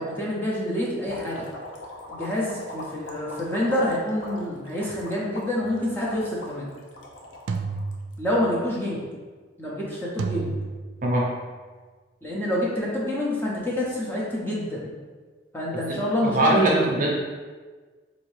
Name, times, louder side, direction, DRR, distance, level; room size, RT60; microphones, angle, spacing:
voice 1, 0.0-1.5 2.1-6.7 8.2-9.1 9.6-10.6 12.2-15.0 15.5-17.0, left 1 dB, 10° left, -6 dB, 0.6 m, -27 dB
sound 1, 1.0-8.4, left 1 dB, 80° left, 0.6 m, -41 dB
sound 2, 5.6-5.9 7.5-8.6 10.2-11.4, right 4 dB, 80° right, 0.3 m, -32 dB
voice 2, 15.9-17.1, right 1 dB, 45° right, -3 dB, 0.7 m, -22 dB
4.0 x 2.7 x 3.2 m, 1.4 s
head